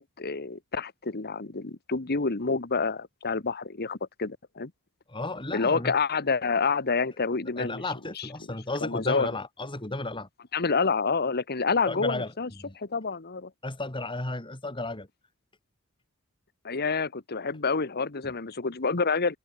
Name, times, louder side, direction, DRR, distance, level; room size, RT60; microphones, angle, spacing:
voice 1, 0.0-4.7 5.5-7.8 8.2-8.3 8.8-9.3 10.5-12.5 12.8-13.5 16.6-19.4, left 4 dB, 45° left, 1.3 m, -28 dB
voice 2, 5.1-5.9 7.6-10.3 11.9-12.3 12.6-12.7 13.6-15.1 18.2-18.3, left 2 dB, 20° left, 2.6 m, -33 dB
head